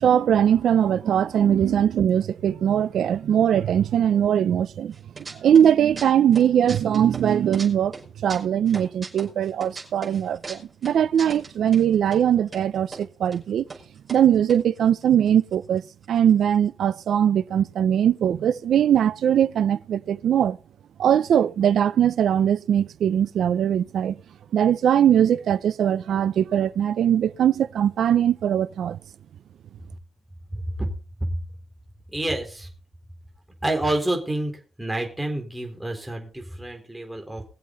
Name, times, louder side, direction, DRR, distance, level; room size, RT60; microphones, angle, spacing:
voice 1, 0.0-4.9 5.3-7.9 8.2-13.6 14.1-15.8 16.1-20.6 21.0-24.2 24.5-29.0, right 9 dB, 75° right, 0.6 m, -21 dB
sound 1, 4.9-5.7 6.0-7.7 7.9-11.8 12.1-12.2 12.5-13.0 13.3-13.4 13.7-13.8 14.1-15.8 16.0-16.1 16.3-16.6, right 4 dB, 25° right, 5.3 m, -39 dB
voice 2, 30.5-30.9 32.1-32.7 33.6-34.5 34.8-37.4, right 1 dB, 5° right, 4.2 m, -28 dB
21.5 x 7.7 x 4.1 m
wide cardioid pair, 135°, 0 cm